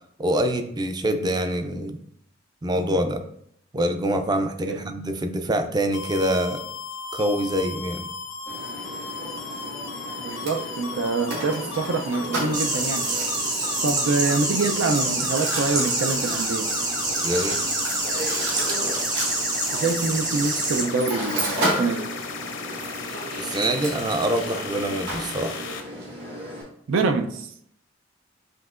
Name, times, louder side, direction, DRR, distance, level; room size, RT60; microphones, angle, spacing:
voice 1, 0.2-2.0 2.6-3.2 3.7-6.6 7.1-8.1 17.2-17.6 23.4-25.6, right 1 dB, 20° right, 0.4 m, -25 dB
sound 1, 5.9-25.8, left 4 dB, 70° left, 0.7 m, -36 dB
Mechanisms, 8.5-26.6, right 1 dB, 65° right, 1.7 m, -33 dB
voice 2, 10.2-13.1 13.8-16.7 19.7-22.1 26.9-27.5, right 3 dB, 90° right, 0.5 m, -25 dB
sound 2, 12.5-20.8, right 2 dB, 45° right, 1.3 m, -27 dB
7.6 x 2.8 x 2.4 m
head